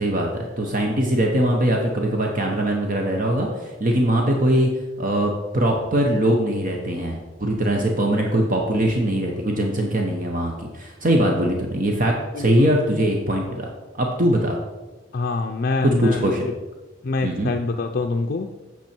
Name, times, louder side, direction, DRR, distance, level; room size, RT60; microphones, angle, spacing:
voice 1, 0.0-4.7 5.0-13.7 14.0-14.6 15.8-16.5 17.2-17.5, right 1 dB, 45° right, 1 dB, 1.0 m, -21 dB
voice 2, 12.3-12.7 15.1-16.3 17.0-18.5, left 3 dB, 50° left, 5 dB, 0.4 m, -25 dB
8.9 x 6.1 x 4.5 m, 1.2 s
head